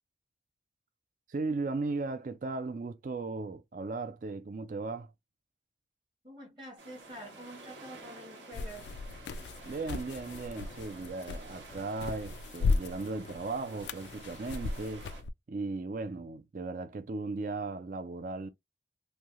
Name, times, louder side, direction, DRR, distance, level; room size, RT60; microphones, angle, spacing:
voice 1, 1.3-5.1 9.6-15.1 15.5-18.5, right 3 dB, 45° right, 0.4 m, -36 dB
voice 2, 6.2-8.9, equal, 25° right, 0.9 m, -47 dB
sound 1, 6.8-15.2, right 2 dB, 85° right, 1.2 m, -51 dB
sound 2, 8.5-15.3, left 4 dB, 75° left, 0.3 m, -36 dB
3.2 x 2.6 x 2.4 m
head